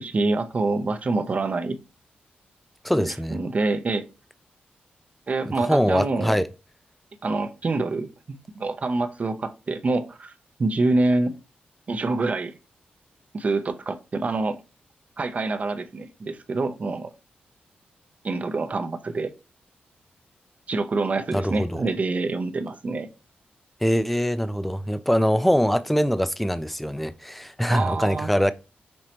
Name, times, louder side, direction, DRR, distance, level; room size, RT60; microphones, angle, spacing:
voice 1, 0.0-1.8 2.9-4.1 5.3-6.4 7.2-10.3 10.6-11.3 11.9-12.5 13.3-14.6 15.2-17.1 18.2-19.3 20.7-23.1 27.7-28.3, right 3 dB, 45° right, 0.6 m, -26 dB
voice 2, 2.8-3.4 5.6-6.5 21.3-21.8 23.8-28.5, equal, 5° left, 0.4 m, -23 dB
5.2 x 3.1 x 2.9 m
cardioid pair, 80°, 3 cm